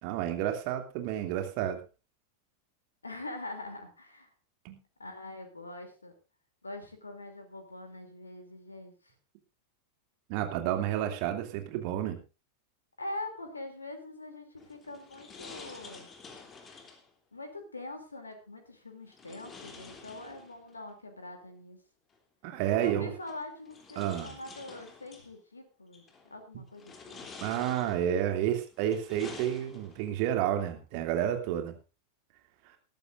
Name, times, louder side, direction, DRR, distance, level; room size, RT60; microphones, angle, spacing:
voice 1, 0.0-1.8 4.6-4.8 10.3-12.2 22.4-23.1 24.0-24.3 27.4-31.7, right 11 dB, 45° right, 6 dB, 2.7 m, -30 dB
voice 2, 3.0-4.3 5.0-6.1 6.6-9.1 13.0-16.1 17.3-21.8 22.8-26.0 26.3-27.3, left 2 dB, 80° left, 6 dB, 2.9 m, -43 dB
sound 1, 14.6-17.1 19.1-20.8 22.1-22.2 23.2-25.3 25.9-26.3 26.7-28.2 28.7-30.1, left 4 dB, 20° left, 3.2 m, -49 dB
19.0 x 14.0 x 2.6 m, 0.30 s
figure-of-eight pair, 90°, 0 cm